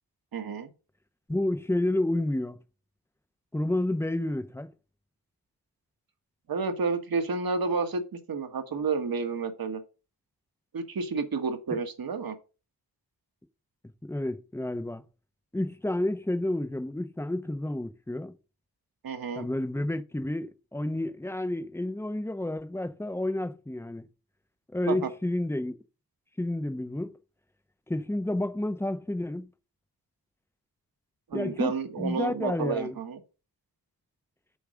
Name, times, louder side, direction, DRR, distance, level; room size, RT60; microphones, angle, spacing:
voice 1, 0.3-0.7 6.5-8.0 8.3-9.8 10.7-12.3 19.0-19.5 24.9-25.0 31.3-33.2, right 4 dB, 60° right, 1.3 m, -30 dB
voice 2, 1.3-2.6 3.5-4.7 14.0-15.0 15.5-18.3 19.4-24.1 24.7-25.8 26.4-27.1 27.9-29.5 31.3-33.0, left 1 dB, 5° left, 0.6 m, -30 dB
7.1 x 4.6 x 6.2 m
wide cardioid pair, 140°, 39 cm